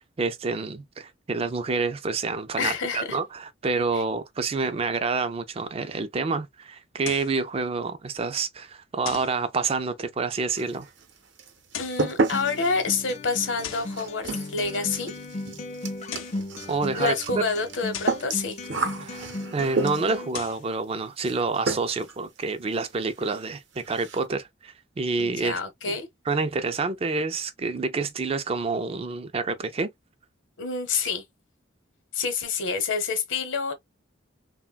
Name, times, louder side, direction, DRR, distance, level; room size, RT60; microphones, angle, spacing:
voice 1, 0.2-10.9 16.7-17.4 19.0-25.6 26.3-29.9, right 4 dB, 30° right, 0.4 m, -28 dB
voice 2, 2.6-3.2 3.9-4.0 11.8-15.1 16.9-18.6 25.2-26.1 30.6-31.2 32.1-33.7, left 4 dB, 70° left, 0.8 m, -28 dB
sound 1, 7.0-7.4 9.0-9.4 11.6-12.1 13.6-14.0 15.9-16.5 17.9-18.3 20.1-20.7, left 9 dB, 90° left, 0.5 m, -38 dB
sound 2, 10.5-11.1 11.4-20.3 21.2-21.4 21.7-22.1 22.4-22.5 22.9-23.0 23.3-23.4 23.8-24.2, right 3 dB, 65° right, 0.7 m, -31 dB
Acoustic guitar, 12.3-20.3, left 2 dB, 35° left, 0.4 m, -36 dB
3.3 x 2.2 x 2.3 m
head